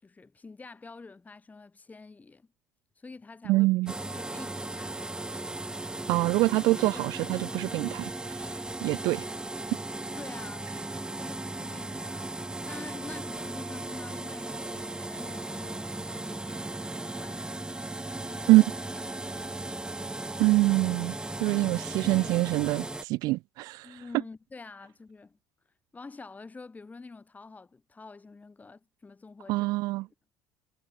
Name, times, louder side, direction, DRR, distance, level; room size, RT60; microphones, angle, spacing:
voice 1, 0.0-2.5 3.0-3.7 4.0-4.9 6.9-7.1 10.2-10.7 11.2-12.4 12.7-17.8 18.2-18.7 18.9-19.8 22.0-22.3 23.8-25.4 25.9-29.7 30.0-30.1, left 3 dB, 20° left, 4.4 m, -47 dB
voice 2, 3.5-3.9 6.1-8.1 8.8-9.2 18.5-18.6 20.4-21.1 21.4-23.9 29.5-30.1, right 20 dB, 55° right, 0.5 m, -24 dB
sound 1, 3.9-23.0, right 2 dB, 10° right, 2.0 m, -37 dB
figure-of-eight pair, 60°, 8 cm